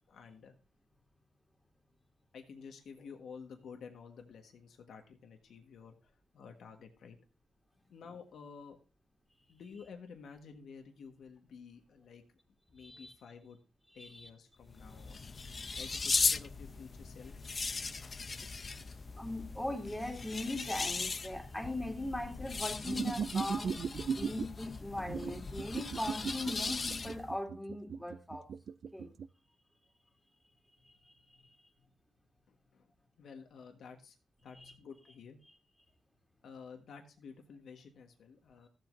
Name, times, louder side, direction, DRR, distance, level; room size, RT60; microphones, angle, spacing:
voice 1, 0.1-0.5 2.3-7.2 7.9-8.8 9.5-12.2 12.7-13.6 13.9-15.2 15.7-17.3 32.5-32.9 33.2-34.2 34.4-35.4 36.4-38.7, left 6 dB, 80° left, 4 dB, 1.4 m, -51 dB
voice 2, 12.8-13.1 14.0-14.3 14.9-15.0 15.6-16.1 19.2-23.7 24.1-28.5 28.9-29.1 30.8-31.1 34.5-34.7, left 1 dB, 5° left, 1 dB, 2.5 m, -40 dB
sound 1, 14.6-27.4, left 4 dB, 40° left, 0.6 m, -38 dB
sound 2, 22.9-24.5 25.0-29.3, right 6 dB, 65° right, 0.3 m, -37 dB
14.5 x 7.8 x 2.6 m, 0.32 s
cardioid pair, 80°, 0 cm